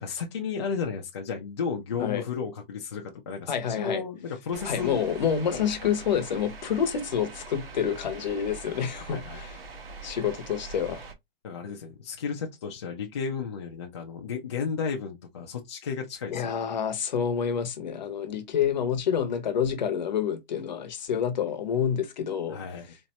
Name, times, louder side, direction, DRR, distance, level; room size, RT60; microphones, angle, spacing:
voice 1, 0.0-5.0 5.5-5.7 9.1-9.4 11.4-16.5 22.5-22.9, left 6 dB, 30° left, 0.5 m, -33 dB
voice 2, 3.5-4.0 4.6-9.6 10.0-11.0 16.3-22.6, left 8 dB, 50° left, 0.9 m, -28 dB
sound 1, 4.5-11.1, right 4 dB, 80° right, 1.5 m, -43 dB
4.2 x 2.6 x 3.0 m
hypercardioid pair, 175°, 29 cm